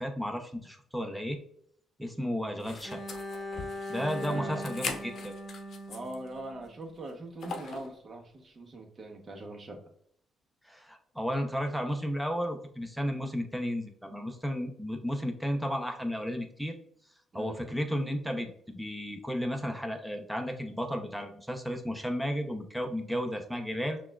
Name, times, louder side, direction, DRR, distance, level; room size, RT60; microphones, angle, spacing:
voice 1, 0.0-1.4 2.0-3.0 3.9-5.3 10.6-16.8 17.3-24.0, equal, 5° right, 4 dB, 0.6 m, -33 dB
sound 1, 2.6-6.3 6.6-6.7 7.4-7.9, left 4 dB, 60° left, 0.7 m, -41 dB
Bowed string instrument, 2.8-6.9, left 1 dB, 15° left, 1.2 m, -40 dB
voice 2, 4.2-4.6 5.9-9.9 17.3-17.7, right 2 dB, 40° right, 2 dB, 0.8 m, -42 dB
5.8 x 2.3 x 2.3 m, 0.67 s
cardioid pair, 90°, 0 cm